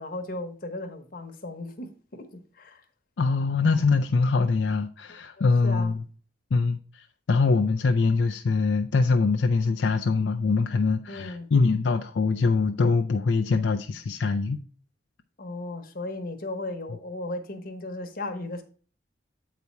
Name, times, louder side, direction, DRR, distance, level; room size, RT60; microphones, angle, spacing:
voice 1, 0.0-2.3 2.5-2.8 5.4-5.9 11.1-11.5 15.4-18.6, left 2 dB, 50° left, 1.0 m, -36 dB
voice 2, 3.2-6.0 6.5-14.6, left 4 dB, 80° left, 0.5 m, -23 dB
8.2 x 4.2 x 4.6 m
head